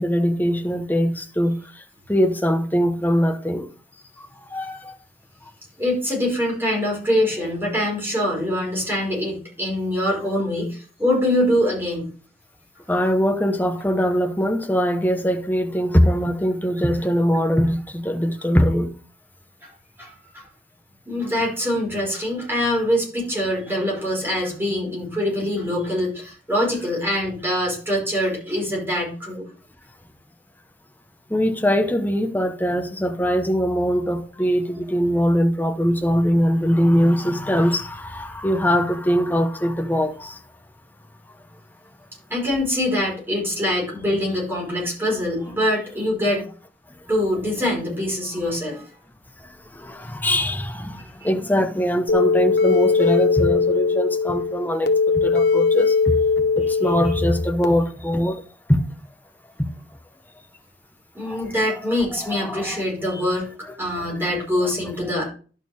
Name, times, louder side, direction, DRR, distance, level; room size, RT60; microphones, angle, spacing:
voice 1, 0.0-1.6 2.1-3.7 4.2-4.9 12.9-18.9 31.3-40.4 49.4-55.9 56.6-58.4 58.7-58.8 59.6-59.7 61.2-61.4 62.3-62.8, equal, 10° left, 0.9 m, -22 dB
voice 2, 5.8-12.1 19.6-19.7 20.0-20.5 21.1-29.5 42.3-46.4 47.1-48.8 51.2-51.3 56.8-56.9 61.1-63.5 63.8-65.3, left 1 dB, 15° right, 4.8 m, -24 dB
sound 1, 52.1-57.7, left 4 dB, 65° left, 1.0 m, -20 dB
11.5 x 6.5 x 3.5 m
head